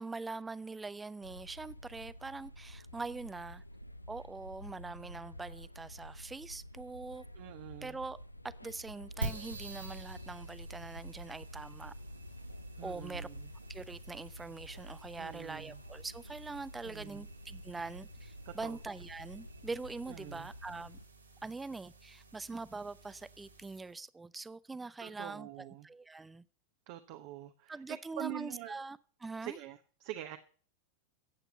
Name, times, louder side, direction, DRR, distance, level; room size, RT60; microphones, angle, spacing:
voice 1, 0.0-3.6 4.1-7.2 7.8-8.2 8.6-11.9 12.8-13.3 13.7-21.0 21.4-25.5 25.8-26.4 27.7-29.6, right 3 dB, 10° right, 0.6 m, -43 dB
sound 1, 1.2-21.1, equal, 85° left, 0.6 m, -49 dB
voice 2, 7.3-8.0 12.8-13.5 15.2-15.8 16.8-17.3 18.4-18.8 20.1-20.5 25.0-25.9 26.9-28.7 29.4-30.4, right 14 dB, 45° right, 1.0 m, -45 dB
sound 2, 9.2-23.9, right 2 dB, 80° right, 2.2 m, -49 dB
15.0 x 8.3 x 7.1 m
figure-of-eight pair, 90°, 0 cm